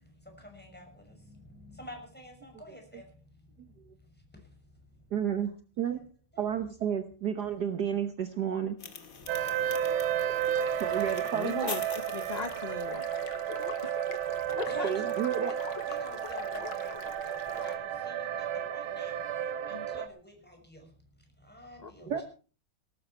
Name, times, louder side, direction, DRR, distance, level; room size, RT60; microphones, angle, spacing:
voice 1, 0.2-3.0 5.3-5.4 5.9-6.0 6.3-6.7 14.6-19.2 19.7-20.9 21.4-22.2, equal, 5° left, 2 dB, 6.0 m, -48 dB
voice 2, 3.6-3.9 5.1-6.0 6.4-8.8 10.8-11.8 14.8-15.5 22.1-22.2, right 8 dB, 55° right, 9 dB, 1.5 m, -32 dB
sound 1, 8.8-13.9, left 5 dB, 40° left, 2.2 m, -46 dB
sound 2, 9.3-20.1, right 10 dB, 75° right, 1.7 m, -32 dB
sound 3, 10.4-17.8, left 7 dB, 70° left, 2.1 m, -45 dB
voice 3, 11.3-11.8 12.1-13.1 13.8-14.0 14.6-14.9 19.7-19.8 21.8-21.9, left 4 dB, 90° left, 11 dB, 0.3 m, -38 dB
18.0 x 14.5 x 4.5 m, 0.37 s
omnidirectional pair, 2.3 m